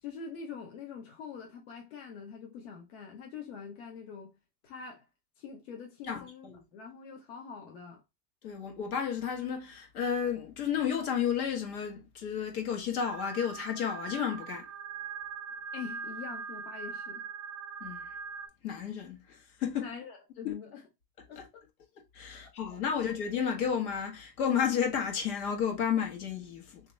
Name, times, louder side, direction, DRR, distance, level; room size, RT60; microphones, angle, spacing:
voice 1, 0.0-4.4 4.6-5.1 5.4-8.0 15.7-17.3 19.8-20.9 21.3-21.5 22.4-22.5 22.9-23.0, left 6 dB, 40° left, 0.7 m, -44 dB
voice 2, 6.1-6.6 8.4-14.7 17.8-18.0 18.6-19.9 20.4-20.5 21.4-21.5 22.1-26.8, left 8 dB, 60° left, 1.3 m, -32 dB
sound 1, 13.0-18.5, right 6 dB, 25° right, 0.6 m, -41 dB
3.6 x 2.9 x 3.1 m
supercardioid pair, 170°, 48 cm